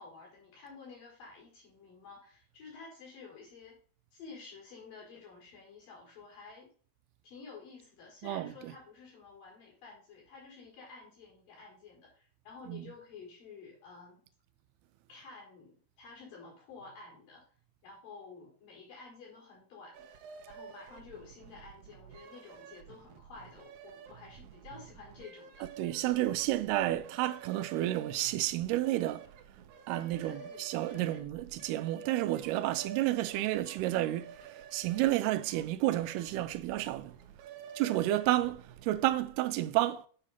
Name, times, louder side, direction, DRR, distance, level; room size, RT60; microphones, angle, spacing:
voice 1, 0.0-3.8 4.1-6.7 7.2-14.2 15.1-17.4 17.8-20.1 20.5-25.7 30.2-31.2, left 4 dB, 60° left, 5.7 m, -51 dB
voice 2, 8.2-8.7 12.7-12.8 25.8-29.3 29.9-37.1 37.8-40.1, right 15 dB, 90° right, 2.6 m, -31 dB
sound 1, 19.9-39.4, right 8 dB, 70° right, 2.0 m, -51 dB
9.1 x 5.1 x 5.6 m
omnidirectional pair, 4.5 m